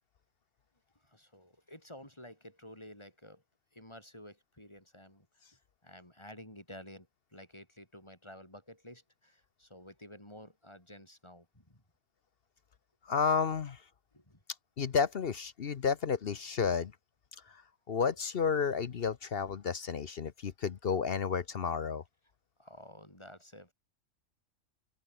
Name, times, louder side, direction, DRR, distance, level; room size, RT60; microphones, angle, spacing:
voice 1, 1.0-3.4 3.7-5.3 5.8-7.1 7.3-11.8 14.1-14.4 22.6-23.7, left 1 dB, 20° left, 5.4 m, -52 dB
voice 2, 13.1-13.8 14.8-16.9 17.9-22.0, left 6 dB, 50° left, 1.0 m, -31 dB
omnidirectional pair, 1.3 m